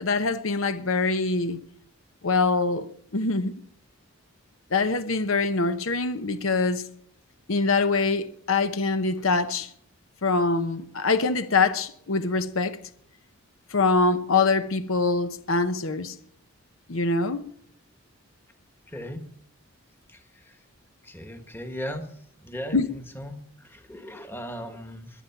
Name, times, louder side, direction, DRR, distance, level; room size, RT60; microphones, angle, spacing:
voice 1, 0.0-1.6 2.2-3.5 4.7-6.9 7.5-9.7 10.2-12.8 13.7-16.2 16.9-17.5 22.7-22.9, left 3 dB, 65° left, 0.8 m, -24 dB
voice 2, 21.0-22.0 22.4-22.8 23.1-23.3 23.7-25.1, equal, 10° left, 1.4 m, -36 dB
22.5 x 9.1 x 5.8 m
head